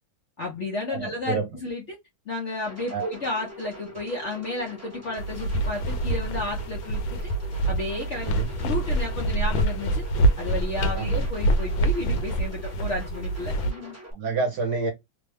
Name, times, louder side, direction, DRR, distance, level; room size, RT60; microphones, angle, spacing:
voice 1, 0.4-2.0 2.3-7.3 7.7-8.3 8.6-10.1 10.4-14.0, left 2 dB, 65° left, 0.7 m, -32 dB
voice 2, 0.9-1.5 2.9-3.1 8.2-8.5 10.9-11.1 14.1-14.9, right 4 dB, 65° right, 1.2 m, -28 dB
sound 1, 2.6-14.1, right 1 dB, 15° right, 0.5 m, -44 dB
sound 2, 5.2-13.7, right 1 dB, 80° left, 1.4 m, -26 dB
3.4 x 2.1 x 3.3 m
omnidirectional pair, 2.2 m